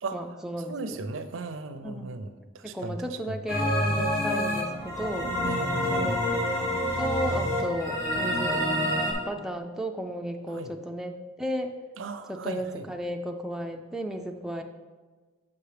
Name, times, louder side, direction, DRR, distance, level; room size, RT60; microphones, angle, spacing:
voice 1, 0.1-1.0 1.8-2.1 2.6-5.3 5.9-6.2 6.6-11.7 12.3-14.6, equal, 5° right, 2 dB, 0.3 m, -34 dB
voice 2, 0.7-2.3 2.5-3.4 5.4-6.1 10.5-10.7 12.0-12.8, right 3 dB, 80° right, 9 dB, 0.5 m, -37 dB
sound 1, 3.5-9.1, equal, 15° left, 1.3 m, -27 dB
6.8 x 5.3 x 3.3 m, 1.3 s
head